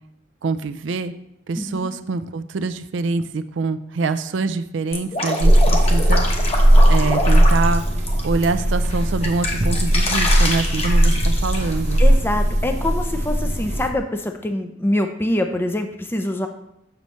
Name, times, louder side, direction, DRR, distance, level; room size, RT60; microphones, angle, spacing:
voice 1, 0.4-1.1 1.5-6.6 6.9-7.8 8.2-12.0, right 3 dB, 70° right, 11 dB, 0.4 m, -25 dB
voice 2, 1.6-1.9 12.0-16.5, left 1 dB, 10° left, 5 dB, 0.4 m, -24 dB
Drip, 4.9-8.4 8.8-12.0, left 2 dB, 30° left, 0.9 m, -26 dB
sound 1, 5.4-13.9, right 1 dB, 35° right, 0.8 m, -17 dB
6.9 x 6.5 x 3.1 m, 0.82 s
head